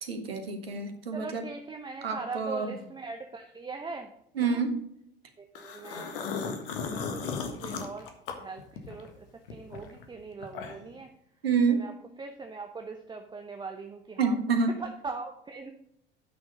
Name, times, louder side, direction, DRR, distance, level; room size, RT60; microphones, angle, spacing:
voice 1, 0.0-1.4 2.0-2.7 4.4-4.7 11.4-11.8 14.2-14.7, right 5 dB, 75° right, 6 dB, 1.5 m, -27 dB
voice 2, 1.1-4.1 4.4-4.7 5.4-6.2 6.8-8.1 8.4-11.1 11.7-15.7, right 4 dB, 15° right, 5 dB, 0.8 m, -41 dB
sound 1, 5.5-9.1 9.5-11.0, left 5 dB, 60° left, 1.5 m, -36 dB
9.0 x 6.5 x 5.2 m, 0.77 s
figure-of-eight pair, 70°, 30 cm